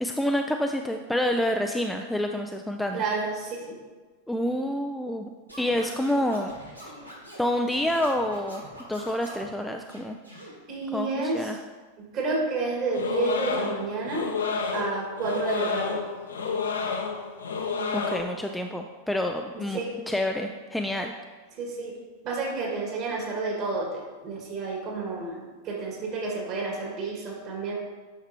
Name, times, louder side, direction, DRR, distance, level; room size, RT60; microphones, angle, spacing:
voice 1, 0.0-3.0 4.3-5.3 5.6-6.5 7.4-8.6 8.9-10.2 10.9-11.6 17.9-19.8 20.1-21.1, left 1 dB, 5° left, 3 dB, 0.4 m, -28 dB
voice 2, 2.9-3.8 10.7-11.6 12.0-14.3 14.7-16.0 19.5-20.0 21.6-22.0 22.2-27.7, right 3 dB, 35° right, -1 dB, 1.9 m, -30 dB
Scratching (performance technique), 5.5-9.5 9.9-10.5, equal, 85° right, 1.5 m, -44 dB
sound 1, 12.9-18.2, left 5 dB, 70° left, 0.8 m, -30 dB
9.2 x 5.9 x 2.8 m, 1.3 s
figure-of-eight pair, 90°, 0 cm